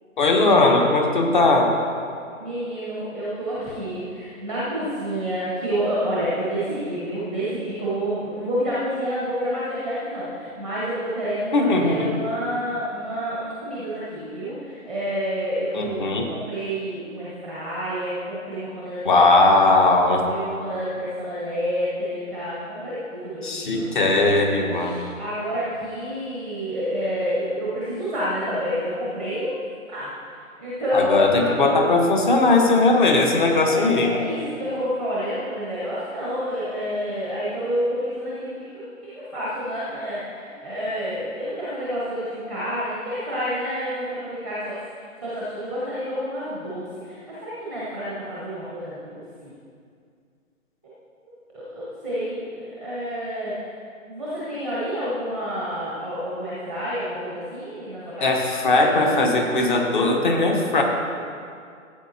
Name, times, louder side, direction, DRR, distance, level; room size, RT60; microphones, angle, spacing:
voice 1, 0.2-1.7 11.5-12.1 15.7-16.3 19.0-20.2 23.4-25.0 30.9-34.1 58.2-60.8, left 2 dB, 35° left, 3 dB, 1.2 m, -19 dB
voice 2, 2.4-19.2 20.0-24.0 24.5-29.5 29.9-30.1 30.6-31.7 33.6-38.8 39.2-44.8 45.2-49.5 51.5-53.6 54.1-58.3, equal, ahead, -8 dB, 0.8 m, -29 dB
15.5 x 8.5 x 2.9 m, 2.3 s
figure-of-eight pair, 155°, 41 cm